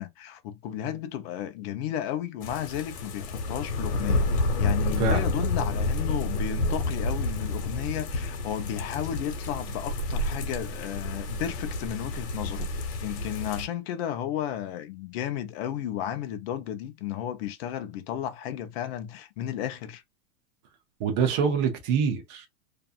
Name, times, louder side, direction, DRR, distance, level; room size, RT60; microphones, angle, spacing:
voice 1, 0.0-4.3 4.6-20.0, left 11 dB, 40° left, 0.6 m, -33 dB
sound 1, 2.4-13.7, left 2 dB, 90° left, 1.1 m, -29 dB
voice 2, 5.0-5.3 21.0-22.5, right 6 dB, 20° right, 0.3 m, -25 dB
2.6 x 2.4 x 2.4 m
hypercardioid pair, 135°, 46 cm